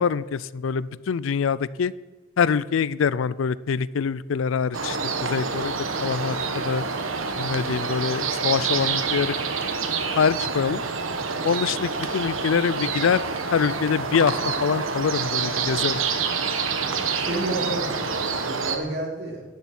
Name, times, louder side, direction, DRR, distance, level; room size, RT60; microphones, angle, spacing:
voice 1, 0.0-1.9 2.4-6.8 7.4-9.4 10.2-10.8 11.4-13.2 13.5-16.0, left 6 dB, 75° left, 19 dB, 0.4 m, -24 dB
sound 1, 4.7-18.8, right 5 dB, 85° right, 1.3 m, -27 dB
voice 2, 17.1-19.4, right 2 dB, 55° right, -1 dB, 3.5 m, -31 dB
11.5 x 7.2 x 9.1 m, 1.2 s
head